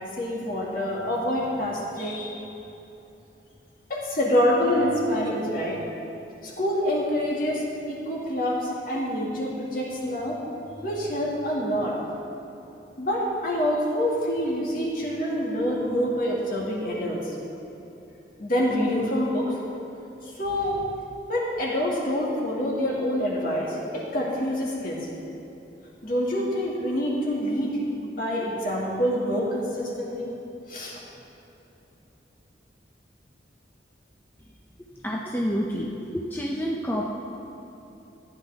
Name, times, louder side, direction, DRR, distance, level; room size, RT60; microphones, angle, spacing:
voice 1, 0.0-2.5 3.9-5.8 6.4-10.4 10.8-12.0 13.0-17.3 18.4-19.6 20.4-20.9 21.3-25.1 26.0-30.3 30.7-31.0, equal, 50° left, -4 dB, 2.2 m, -26 dB
voice 2, 35.0-37.1, equal, 10° left, -2 dB, 0.6 m, -28 dB
15.0 x 10.0 x 3.6 m, 2.9 s
head